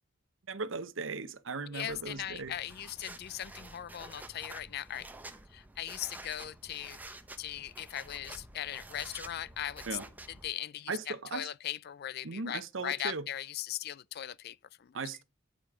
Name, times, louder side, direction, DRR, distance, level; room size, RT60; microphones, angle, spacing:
voice 1, 0.5-2.5 9.9-10.0 10.9-11.5 12.2-13.2 14.9-15.2, right 4 dB, 70° right, 0.8 m, -37 dB
voice 2, 1.7-5.1 5.5-10.0 10.3-15.0, left 11 dB, 50° left, 0.4 m, -39 dB
sound 1, 1.9-10.5, right 2 dB, 10° right, 0.8 m, -50 dB
9.6 x 5.1 x 4.9 m
head